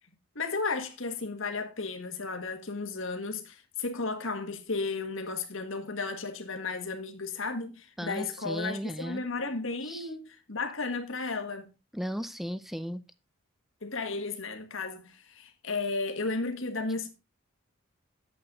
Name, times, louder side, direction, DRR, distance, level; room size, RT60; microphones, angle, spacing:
voice 1, 0.3-11.7 13.8-17.1, left 3 dB, 65° left, 1.7 m, -34 dB
voice 2, 8.0-9.2 9.9-10.1 11.9-13.0, equal, ahead, 0.5 m, -35 dB
8.8 x 8.0 x 3.9 m
head